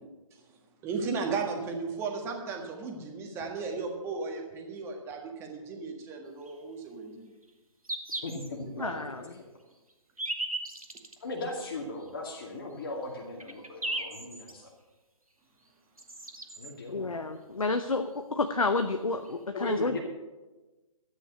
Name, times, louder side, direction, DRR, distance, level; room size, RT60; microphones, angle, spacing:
voice 1, 0.8-7.3 8.6-9.0, right 4 dB, 15° right, 2 dB, 1.6 m, -35 dB
sound 1, 6.4-6.6 7.4-7.5 7.8-8.5 9.0-9.1 9.9-11.2 12.0-12.1 12.8-12.9 13.2-14.5 15.7-15.8 16.0-16.7 18.1-18.2 18.5-18.6 19.2-19.3, right 2 dB, 85° right, 1.7 m, -36 dB
voice 2, 8.2-8.9 11.2-14.7 16.6-17.2 19.5-20.0, left 2 dB, 40° left, 0 dB, 2.3 m, -38 dB
voice 3, 8.8-9.2 16.9-20.0, left 3 dB, 75° left, 7 dB, 0.9 m, -30 dB
13.0 x 9.1 x 6.7 m, 1.2 s
figure-of-eight pair, 135°, 18 cm